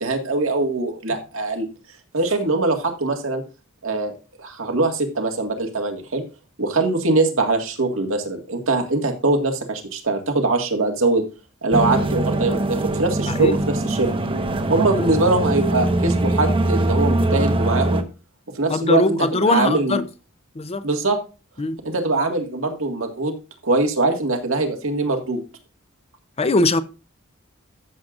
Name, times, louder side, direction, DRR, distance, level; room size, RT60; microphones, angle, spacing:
voice 1, 0.0-1.7 2.1-3.4 3.8-6.2 6.6-11.2 11.6-13.6 13.8-14.1 14.7-18.0 18.5-20.0 20.8-21.2 21.8-23.3 23.6-25.4, right 2 dB, 85° right, 1.9 m, -22 dB
sound 1, 11.7-18.0, right 2 dB, 25° right, 0.8 m, -22 dB
voice 2, 18.7-20.0 20.6-20.8 21.6-21.8 26.4-26.8, left 2 dB, 30° left, 0.7 m, -20 dB
14.0 x 7.5 x 2.5 m
head